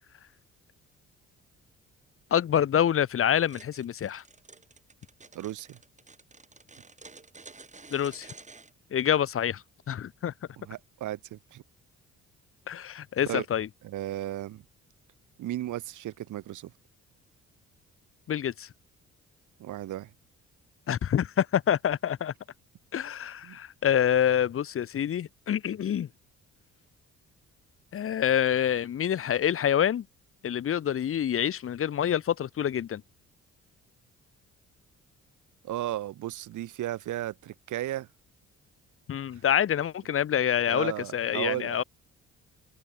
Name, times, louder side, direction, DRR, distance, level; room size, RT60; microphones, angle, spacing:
voice 1, 2.3-4.2 7.9-8.3 8.9-10.3 12.7-13.7 18.3-18.7 20.9-22.3 22.9-26.1 27.9-30.0 30.4-33.0 39.1-41.8, left 9 dB, 45° left, 0.9 m, -27 dB
sound 1, 3.4-8.7, right 4 dB, 25° right, 3.1 m, -50 dB
voice 2, 5.3-5.8 10.6-11.6 13.3-13.4 13.8-14.6 15.4-16.7 19.6-20.1 23.4-23.6 35.6-38.1 40.7-41.8, right 14 dB, 80° right, 2.1 m, -35 dB
cardioid pair, 90°, 30 cm